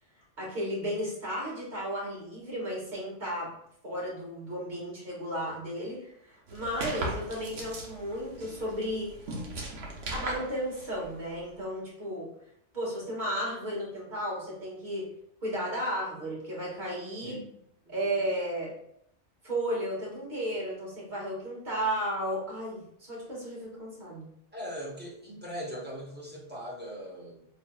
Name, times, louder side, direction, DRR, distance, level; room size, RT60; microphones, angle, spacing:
voice 1, 0.4-3.5 3.8-9.2 10.1-12.3 12.7-15.1 15.4-17.4 17.9-18.7 19.4-24.3, equal, 35° right, -6 dB, 1.8 m, -34 dB
sound 1, 6.5-11.5, right 2 dB, 55° right, 0.9 m, -39 dB
voice 2, 17.2-18.0 24.5-27.5, equal, 10° right, -4 dB, 0.6 m, -40 dB
4.4 x 3.3 x 2.2 m, 0.72 s
omnidirectional pair, 1.4 m